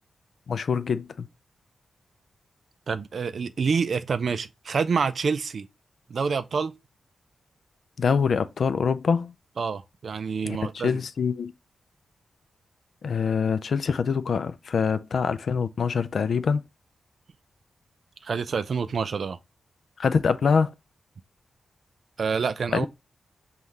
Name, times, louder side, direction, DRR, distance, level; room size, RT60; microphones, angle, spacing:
voice 1, 0.5-1.3 8.0-9.3 10.4-10.6 10.8-11.5 13.0-16.6 20.0-20.7 22.7-22.9, left 6 dB, 60° left, 0.3 m, -24 dB
voice 2, 2.9-5.7 6.1-6.7 9.6-11.0 18.2-19.4 22.2-22.9, right 5 dB, 55° right, 0.3 m, -27 dB
5.5 x 2.3 x 3.1 m
wide cardioid pair, 130°, 0 cm